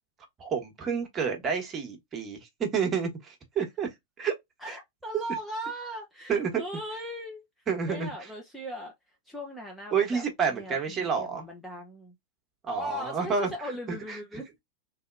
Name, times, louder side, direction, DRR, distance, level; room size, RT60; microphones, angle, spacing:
voice 1, 0.4-3.9 4.2-4.3 4.7-4.8 6.3-6.6 7.7-8.1 9.9-11.5 12.7-13.5 13.9-14.2, right 6 dB, 25° right, 1.1 m, -29 dB
voice 2, 4.6-7.4 7.9-8.9 9.3-10.2 10.5-12.1 12.7-14.5, equal, 5° left, 0.7 m, -38 dB
3.1 x 2.7 x 2.4 m
figure-of-eight pair, 90°, 0 cm